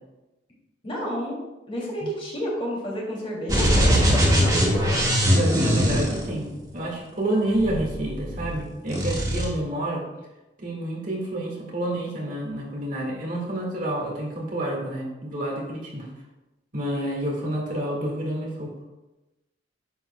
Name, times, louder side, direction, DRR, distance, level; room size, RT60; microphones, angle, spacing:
voice 1, 0.8-1.4 1.7-5.2, equal, 30° left, -3 dB, 2.5 m, -30 dB
sound 1, 3.5-6.8 7.5-8.6 8.9-9.5, equal, 20° right, 1.6 m, -21 dB
voice 2, 5.4-10.0 10.6-16.1 16.7-18.7, right 1 dB, 40° right, -2 dB, 1.8 m, -29 dB
10.0 x 7.7 x 2.2 m, 1.0 s
head